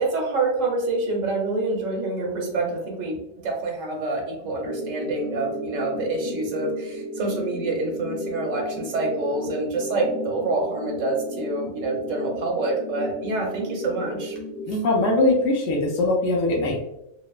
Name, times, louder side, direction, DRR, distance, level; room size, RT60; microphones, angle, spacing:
voice 1, 0.0-14.3 14.7-14.8, right 2 dB, 85° right, 0 dB, 1.0 m, -27 dB
sound 1, 4.7-14.7, left 1 dB, 50° left, 0.4 m, -34 dB
voice 2, 14.7-16.8, left 2 dB, 70° left, -2 dB, 0.9 m, -21 dB
3.0 x 2.0 x 2.3 m, 0.85 s
omnidirectional pair, 1.3 m